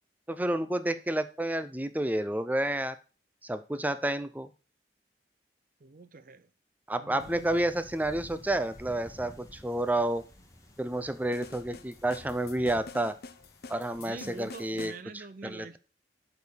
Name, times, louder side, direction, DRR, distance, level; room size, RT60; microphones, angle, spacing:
voice 1, 0.3-3.0 3.4-4.5 6.9-10.2 10.8-13.1 13.7-15.7, right 1 dB, 10° right, 0.6 m, -30 dB
voice 2, 5.8-6.5 6.9-7.5 14.0-15.8, right 3 dB, 50° right, 0.6 m, -45 dB
sound 1, 7.2-14.7, equal, 20° left, 1.4 m, -52 dB
sound 2, 11.3-15.0, left 4 dB, 60° left, 0.6 m, -47 dB
7.0 x 5.3 x 6.2 m
head